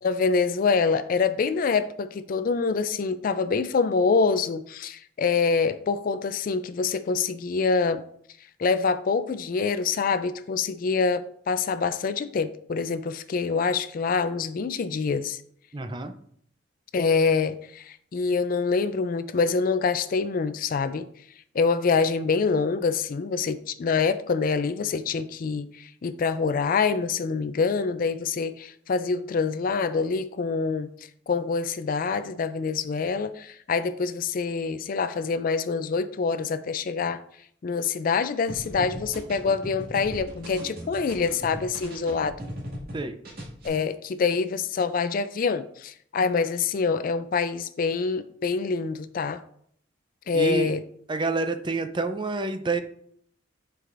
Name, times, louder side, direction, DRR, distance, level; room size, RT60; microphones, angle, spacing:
voice 1, 0.0-8.0 8.6-15.4 16.9-21.1 21.5-30.9 31.3-37.2 37.6-42.3 43.6-49.4 50.3-50.8, left 5 dB, 45° left, 0.3 m, -25 dB
voice 2, 15.7-16.1 42.9-43.2 50.3-50.7 51.1-52.8, right 3 dB, 25° right, 0.5 m, -28 dB
sound 1, 38.5-43.0 43.2-43.7, equal, 50° right, 2.0 m, -38 dB
9.7 x 4.7 x 2.5 m
head